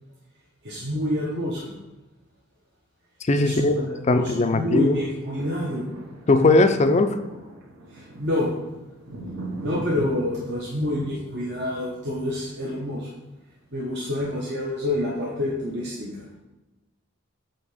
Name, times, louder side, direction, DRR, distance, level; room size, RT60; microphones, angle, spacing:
voice 1, 0.6-1.7 3.4-5.9 7.9-8.5 9.6-13.1 13.7-16.2, left 1 dB, 55° right, -5 dB, 1.0 m, -28 dB
voice 2, 3.3-3.8 4.1-5.0 6.3-7.2, left 2 dB, 35° left, 9 dB, 0.4 m, -19 dB
sound 1, 5.0-13.2 13.7-13.8, right 2 dB, 75° right, 1.3 m, -40 dB
8.5 x 3.0 x 5.0 m, 1.1 s
head